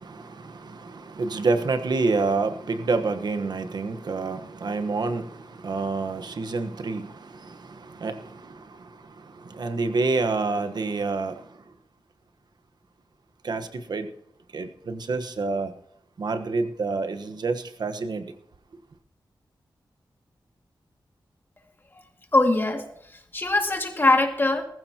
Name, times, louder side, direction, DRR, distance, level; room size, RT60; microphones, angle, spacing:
voice 1, 0.0-8.9 9.4-11.4 13.4-14.1 14.5-15.7 16.2-18.2, right 3 dB, 60° right, 1.2 m, -28 dB
voice 2, 22.3-24.6, left 2 dB, 25° left, 2.2 m, -22 dB
19.5 x 15.0 x 2.9 m
wide cardioid pair, 150°, 8 cm